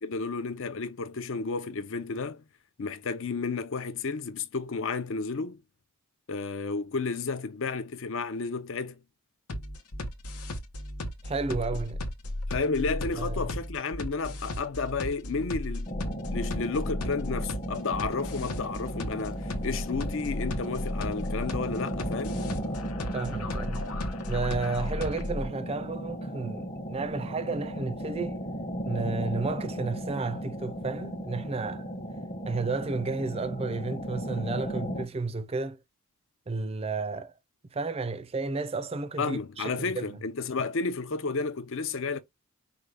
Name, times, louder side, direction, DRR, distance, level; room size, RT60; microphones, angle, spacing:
voice 1, 0.0-2.4 2.8-5.6 6.3-9.0 12.5-15.9 16.3-22.4 39.2-42.2, left 4 dB, 60° left, 0.6 m, -32 dB
sound 1, 9.5-25.5, left 1 dB, 90° left, 0.9 m, -35 dB
voice 2, 11.2-12.0 13.2-13.6 23.1-23.8 24.3-28.4 28.8-31.9 32.5-35.8 36.5-37.3 37.7-40.2, right 3 dB, 25° right, 0.4 m, -32 dB
sound 2, 15.9-35.0, equal, 35° left, 1.0 m, -36 dB
4.9 x 2.3 x 3.3 m
head